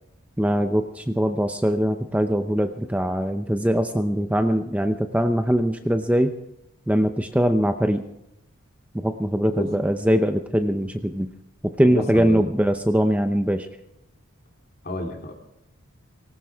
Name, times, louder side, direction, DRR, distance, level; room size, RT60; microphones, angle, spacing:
voice 1, 0.4-6.3 6.9-8.0 8.9-11.3 11.6-13.7, equal, 5° right, 7 dB, 0.7 m, -22 dB
voice 2, 11.8-12.5 14.8-15.3, left 1 dB, 45° left, 3 dB, 3.0 m, -30 dB
19.5 x 18.5 x 3.6 m, 0.88 s
head